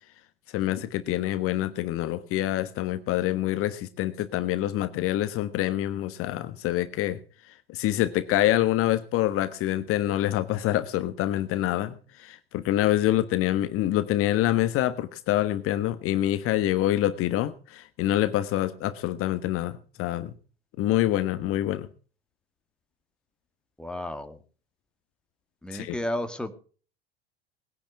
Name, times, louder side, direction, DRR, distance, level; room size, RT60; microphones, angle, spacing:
voice 1, 0.5-7.2 7.7-20.3 20.8-21.9 25.7-26.0, left 13 dB, 45° left, 12 dB, 1.3 m, -26 dB
voice 2, 23.8-24.4 25.6-26.6, left 1 dB, 5° left, 6 dB, 2.2 m, -32 dB
20.0 x 10.5 x 4.8 m, 0.40 s
hypercardioid pair, 75°, 30 cm